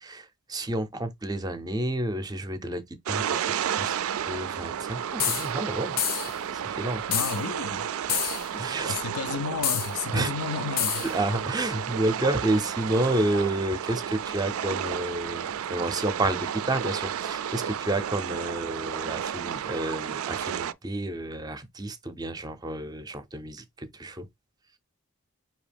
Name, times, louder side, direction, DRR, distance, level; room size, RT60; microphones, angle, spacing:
voice 1, 0.0-5.9 6.5-7.0 8.5-9.0 10.1-10.3 11.1-24.2, right 1 dB, 20° right, 0.5 m, -30 dB
sound 1, 3.1-20.7, right 9 dB, 70° right, 0.3 m, -32 dB
sound 2, 5.2-5.5 6.0-6.4 7.1-7.4 8.1-8.5 9.6-9.9 10.8-11.1, left 9 dB, 40° left, 0.5 m, -27 dB
voice 2, 7.1-7.9 8.9-11.1, left 5 dB, 90° left, 0.5 m, -32 dB
4.8 x 2.8 x 3.4 m
head